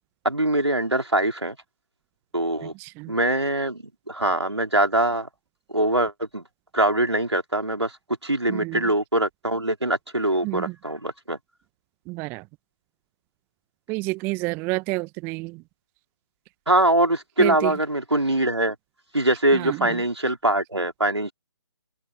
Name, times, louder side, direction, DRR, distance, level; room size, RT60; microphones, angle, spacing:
voice 1, 0.2-1.6 2.3-2.7 3.1-5.3 5.7-6.4 6.7-8.0 8.2-11.4 16.7-18.8 19.1-21.3, right 1 dB, 85° right, 4.3 m, -23 dB
voice 2, 2.6-3.1 8.5-8.8 10.4-10.7 12.1-12.4 13.9-15.6 17.4-17.7 19.5-20.0, right 24 dB, 15° right, 0.9 m, -29 dB
open air
figure-of-eight pair, 140°, 14 cm